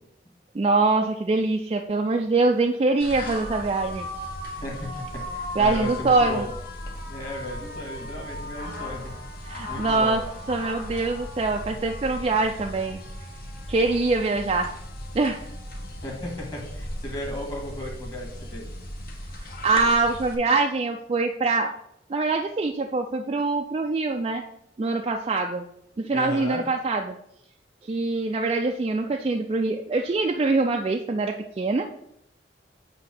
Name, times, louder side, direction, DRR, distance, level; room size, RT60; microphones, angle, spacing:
voice 1, 0.5-4.1 5.6-6.4 9.4-10.2 10.5-13.0 13.7-14.7 15.1-15.4 19.6-21.7 22.1-24.4 24.8-25.7 26.0-27.2 27.8-31.9, right 3 dB, 30° right, 3 dB, 0.3 m, -24 dB
sound 1, 3.0-20.3, left 1 dB, 55° left, 1.3 m, -36 dB
voice 2, 4.6-6.5 7.1-9.1 9.7-10.2 16.0-18.7 26.1-26.6, left 1 dB, 20° left, -1 dB, 1.6 m, -35 dB
7.5 x 2.8 x 5.9 m, 0.77 s
head